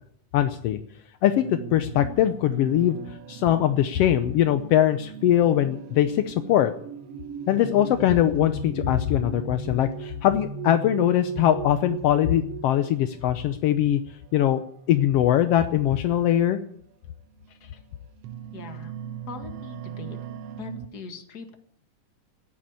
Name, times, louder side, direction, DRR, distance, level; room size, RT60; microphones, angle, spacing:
voice 1, 0.3-0.8 1.2-1.4 1.7-3.0 3.3-6.7 7.5-14.0 14.3-14.6 14.9-16.6, left 11 dB, 75° left, 9 dB, 1.4 m, -21 dB
sound 1, 1.2-13.5 14.3-14.6 15.8-15.9 16.5-16.7 17.4-20.9, right 6 dB, 65° right, 1.6 m, -38 dB
voice 2, 18.5-18.9 19.3-20.2 20.6-21.6, left 4 dB, 35° left, 6 dB, 1.9 m, -40 dB
14.0 x 10.5 x 8.9 m, 0.64 s
omnidirectional pair, 3.6 m